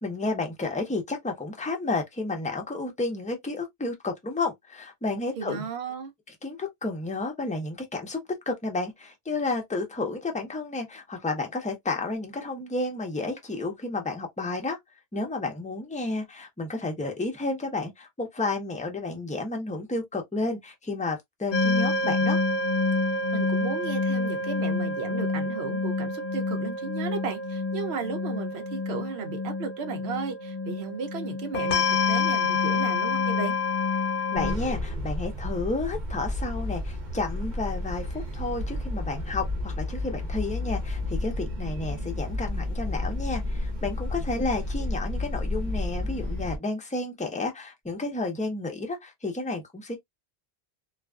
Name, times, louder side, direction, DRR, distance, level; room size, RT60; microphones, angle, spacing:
voice 1, 0.0-5.7 6.4-8.2 8.5-14.8 15.1-22.4 34.3-50.0, left 3 dB, 10° left, 0.4 m, -31 dB
voice 2, 5.4-6.1 23.3-33.6, right 5 dB, 80° right, 0.9 m, -34 dB
sound 1, 21.5-34.6, left 3 dB, 60° left, 0.7 m, -27 dB
sound 2, 34.3-46.6, left 2 dB, 50° right, 0.9 m, -31 dB
2.4 x 2.3 x 2.2 m
omnidirectional pair, 1.1 m